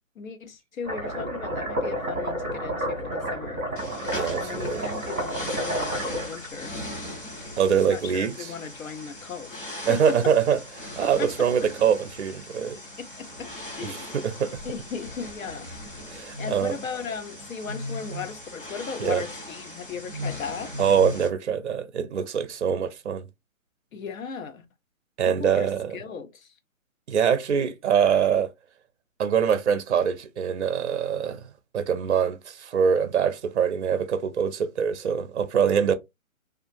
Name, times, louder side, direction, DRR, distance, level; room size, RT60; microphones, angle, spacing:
voice 1, 0.2-3.6 4.3-6.8 7.7-10.6 11.0-11.7 13.0-13.5 13.8-14.2 14.6-15.7 15.9-16.0 16.4-20.7 23.9-24.6 25.2-26.5, left 6 dB, 75° left, 0.7 m, -37 dB
sound 1, 0.8-6.5, right 1 dB, 10° left, 0.7 m, -30 dB
sound 2, 3.8-21.3, left 1 dB, 40° left, 1.0 m, -38 dB
voice 2, 4.1-4.8 7.6-8.4 9.9-12.8 13.8-14.6 16.1-16.8 19.0-19.2 20.8-23.3 25.2-26.0 27.1-28.5 29.2-31.4 31.7-35.9, right 7 dB, 55° right, 0.5 m, -24 dB
2.7 x 2.4 x 2.5 m
hypercardioid pair, 175°, 41 cm